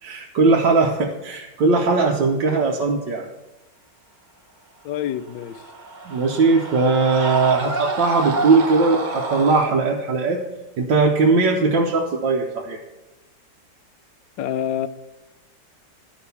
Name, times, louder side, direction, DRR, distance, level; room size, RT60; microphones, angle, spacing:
voice 1, 0.0-3.3 6.0-10.4 10.8-12.8, right 3 dB, 75° right, 0 dB, 1.5 m, -19 dB
voice 2, 4.8-5.6 14.4-14.9, left 10 dB, 80° left, 12 dB, 1.3 m, -26 dB
Screaming, 5.3-9.7, right 3 dB, 40° right, 0.7 m, -28 dB
11.5 x 6.2 x 6.9 m, 1.1 s
omnidirectional pair, 2.0 m